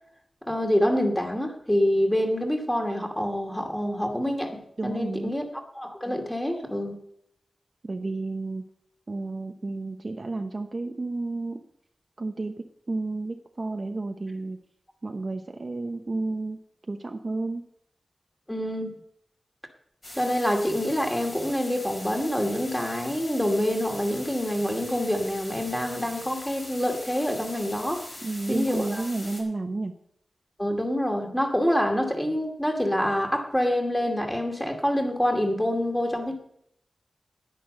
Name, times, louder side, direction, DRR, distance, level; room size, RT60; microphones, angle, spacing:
voice 1, 0.4-5.4 5.7-7.0 18.5-19.0 20.2-28.0 28.5-29.0 30.6-36.3, equal, 5° left, 3 dB, 2.4 m, -26 dB
voice 2, 4.8-5.3 7.8-8.7 9.1-11.6 12.2-14.6 15.0-16.6 16.9-17.6 28.2-29.9, right 2 dB, 40° right, 5 dB, 0.9 m, -31 dB
sound 1, 20.0-29.4, left 1 dB, 35° left, 4.2 m, -42 dB
10.5 x 10.0 x 5.4 m, 0.73 s
wide cardioid pair, 90°, 0 cm